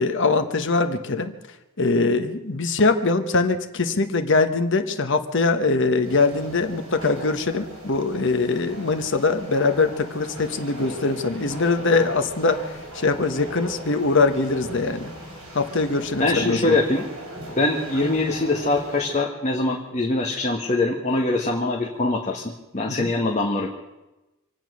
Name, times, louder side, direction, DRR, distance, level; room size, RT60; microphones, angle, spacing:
voice 1, 0.0-1.3 1.8-12.6 12.9-15.1 15.5-16.8 23.0-23.1, left 3 dB, 55° left, 8 dB, 1.1 m, -22 dB
sound 1, 6.0-19.2, right 1 dB, 65° right, 4.7 m, -38 dB
voice 2, 16.2-17.1 17.6-22.4 22.7-23.7, left 2 dB, 35° left, 0 dB, 1.5 m, -23 dB
26.0 x 8.9 x 6.3 m, 1.0 s
head